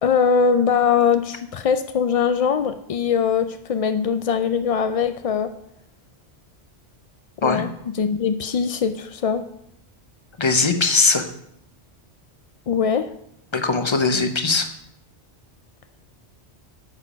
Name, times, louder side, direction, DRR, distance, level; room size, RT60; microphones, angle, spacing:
voice 1, 0.0-5.5 7.4-9.4 12.7-13.1, left 6 dB, 65° left, 9 dB, 0.3 m, -21 dB
voice 2, 10.4-11.2 13.5-14.7, left 3 dB, 30° left, 6 dB, 0.9 m, -20 dB
9.8 x 6.6 x 5.2 m, 0.75 s
omnidirectional pair, 1.1 m